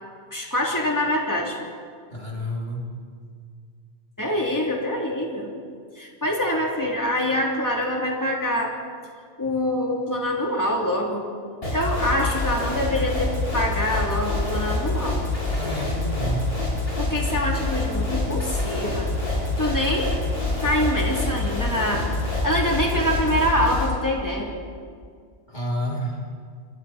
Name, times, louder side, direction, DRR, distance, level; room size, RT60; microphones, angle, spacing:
voice 1, 0.3-1.6 4.2-5.5 6.0-8.8 9.4-11.2 11.7-15.2 17.0-19.1 19.3-20.2 20.6-24.5, left 1 dB, 15° left, -2 dB, 3.3 m, -25 dB
voice 2, 2.1-2.9 15.5-16.4 25.5-26.2, equal, 40° left, -3 dB, 2.9 m, -29 dB
sound 1, 11.6-23.9, left 2 dB, 55° left, 7.4 m, -26 dB
29.5 x 23.5 x 4.4 m, 2.1 s
omnidirectional pair, 1.2 m